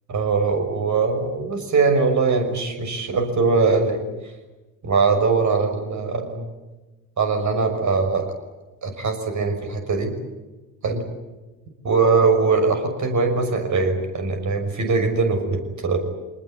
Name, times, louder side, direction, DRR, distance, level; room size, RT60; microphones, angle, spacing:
voice 1, 0.1-4.0 4.8-6.5 7.2-8.3 8.8-10.1 10.8-11.1 11.8-16.0, right 4 dB, 40° right, 6 dB, 6.3 m, -21 dB
26.5 x 20.0 x 9.7 m, 1.2 s
figure-of-eight pair, 55°, 45 cm